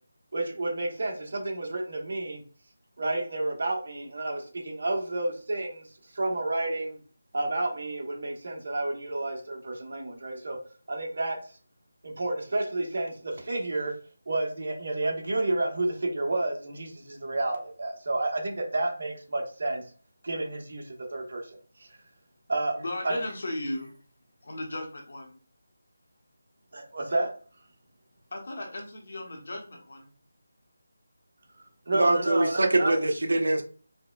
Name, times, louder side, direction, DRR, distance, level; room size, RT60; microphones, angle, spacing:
voice 1, 0.3-2.4 3.0-5.9 6.1-7.0 7.3-10.6 10.9-11.4 12.0-13.9 14.3-19.8 20.2-21.4 21.8-22.0 22.5-22.8 23.0-23.2 26.7-27.3 31.9-32.9, right 2 dB, 55° right, 1.1 m, -30 dB
voice 2, 22.8-23.9 24.4-25.4 28.3-30.1, left 1 dB, 55° left, 1.0 m, -36 dB
voice 3, 31.9-33.6, right 2 dB, 75° right, 0.6 m, -23 dB
4.8 x 2.2 x 2.3 m
figure-of-eight pair, 175°, 0 cm